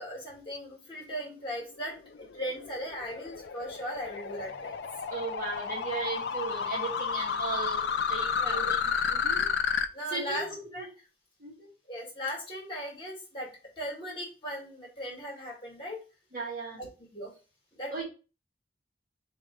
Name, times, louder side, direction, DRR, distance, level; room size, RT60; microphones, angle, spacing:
voice 1, 0.0-4.8 8.4-8.7 9.9-10.8 11.9-13.5 13.8-16.0 16.8-16.9 17.1-17.3 17.7-18.0, equal, 30° left, -3 dB, 1.7 m, -38 dB
sound 1, 1.8-9.9, left 6 dB, 60° left, 0.4 m, -31 dB
voice 2, 5.1-9.5 10.1-10.9 11.4-11.7 16.3-16.8 17.9-18.0, right 3 dB, 45° right, -4 dB, 1.4 m, -37 dB
3.1 x 2.8 x 4.5 m, 0.34 s
head